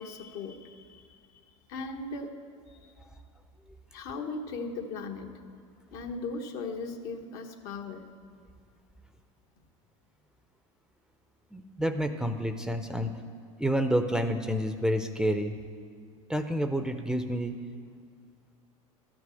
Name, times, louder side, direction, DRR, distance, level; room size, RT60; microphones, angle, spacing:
voice 1, 0.0-1.4 1.7-2.4 2.7-2.9 3.9-5.3 5.9-8.0, left 3 dB, 60° left, 4 dB, 1.2 m, -38 dB
voice 2, 11.5-13.1 13.6-15.5 16.3-17.5, equal, 5° right, 7 dB, 0.6 m, -29 dB
12.5 x 6.2 x 7.7 m, 2.1 s
hypercardioid pair, 95°, 17 cm